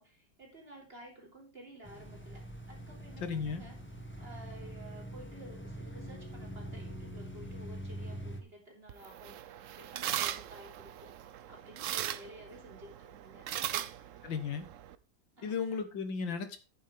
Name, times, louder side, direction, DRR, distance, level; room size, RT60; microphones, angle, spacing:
voice 1, 0.0-3.8 4.2-11.2 11.5-14.1 15.4-15.8, right 1 dB, 30° right, 1 dB, 3.7 m, -53 dB
sound 1, 1.8-8.4, right 1 dB, 5° left, 1.4 m, -44 dB
voice 2, 3.2-3.6 14.2-14.7 15.4-16.6, left 5 dB, 85° left, 9 dB, 2.1 m, -35 dB
sound 2, 8.9-15.0, right 11 dB, 70° right, 0.7 m, -39 dB
11.5 x 8.9 x 3.5 m, 0.31 s
omnidirectional pair, 2.0 m